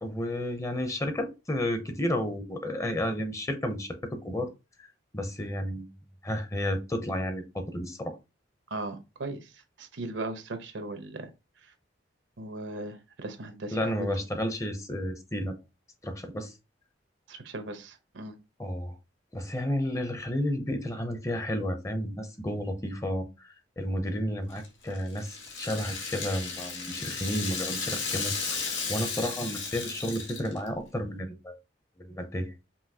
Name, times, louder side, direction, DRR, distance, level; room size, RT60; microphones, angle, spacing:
voice 1, 0.0-4.5 4.8-5.9 6.2-8.2 13.7-15.6 16.0-16.5 18.6-18.9 19.3-31.6 32.0-32.5, left 1 dB, 15° left, 0.6 m, -32 dB
voice 2, 8.7-9.5 9.8-11.3 12.4-14.1 17.3-18.4, right 2 dB, 80° right, 0.9 m, -38 dB
Rattle (instrument), 24.5-30.7, left 5 dB, 85° left, 1.4 m, -34 dB
5.5 x 2.8 x 2.8 m
head